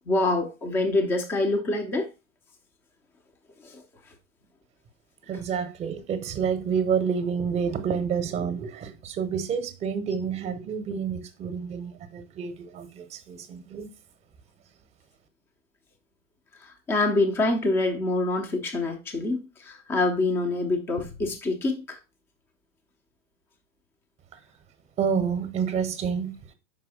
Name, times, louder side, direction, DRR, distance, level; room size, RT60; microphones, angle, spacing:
voice 1, 0.1-2.1 3.6-3.8 16.6-22.0, left 2 dB, 5° left, 0.4 m, -26 dB
voice 2, 5.3-13.9 25.0-26.3, right 6 dB, 15° right, 0.7 m, -29 dB
5.6 x 4.6 x 4.0 m
figure-of-eight pair, 95°, 42 cm